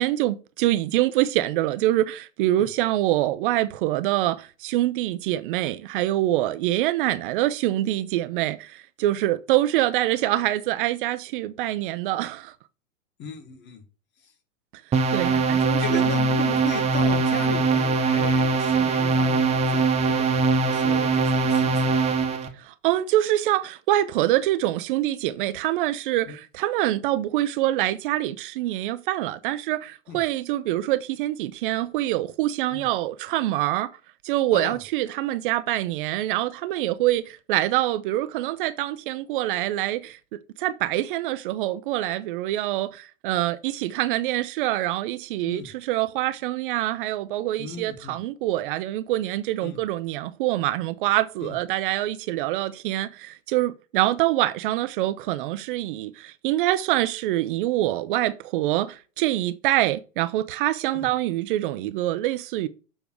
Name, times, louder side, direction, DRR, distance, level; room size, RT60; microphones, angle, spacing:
voice 1, 0.0-12.5 15.1-16.0 22.6-33.9 34.2-62.7, right 15 dB, 40° right, 0.6 m, -25 dB
voice 2, 13.2-13.8 15.3-15.4 15.8-20.3 20.6-21.9 26.3-26.4 30.1-30.2 32.7-32.9 34.5-34.8 45.5-45.7 47.6-48.2 49.6-49.8 51.4-51.5 60.9-61.1, left 6 dB, 25° left, 1.7 m, -36 dB
sound 1, 14.9-22.5, right 4 dB, 15° right, 1.0 m, -22 dB
7.1 x 3.4 x 6.2 m
hypercardioid pair, 115°, 39 cm